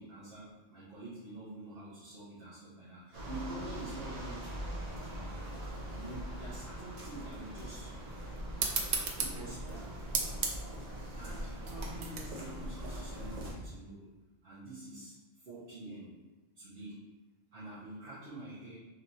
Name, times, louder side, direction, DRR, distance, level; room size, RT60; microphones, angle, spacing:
voice 1, 0.0-4.4 5.0-5.4 5.9-7.9 9.1-10.0 11.1-14.1 14.4-16.2 16.5-17.0 17.5-18.8, right 2 dB, 60° right, -11 dB, 1.2 m, -47 dB
sound 1, 3.1-13.5, equal, 40° right, 0.8 m, -42 dB
sound 2, 8.6-13.7, right 5 dB, 90° right, 0.9 m, -37 dB
4.0 x 3.3 x 2.7 m, 1.2 s
omnidirectional pair, 1.1 m